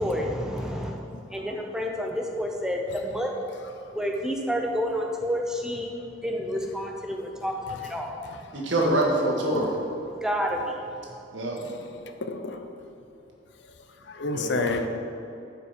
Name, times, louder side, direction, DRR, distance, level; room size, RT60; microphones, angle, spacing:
voice 1, 0.0-3.3 3.9-6.0 6.2-8.1 10.0-10.8, equal, 5° right, 1 dB, 0.6 m, -29 dB
voice 2, 1.1-1.4 11.6-12.6 14.0-14.9, left 3 dB, 60° left, 7 dB, 0.6 m, -31 dB
voice 3, 8.5-9.7 11.3-11.6 14.3-14.8, right 1 dB, 75° right, -2 dB, 1.7 m, -25 dB
8.5 x 5.4 x 5.1 m, 2.7 s
head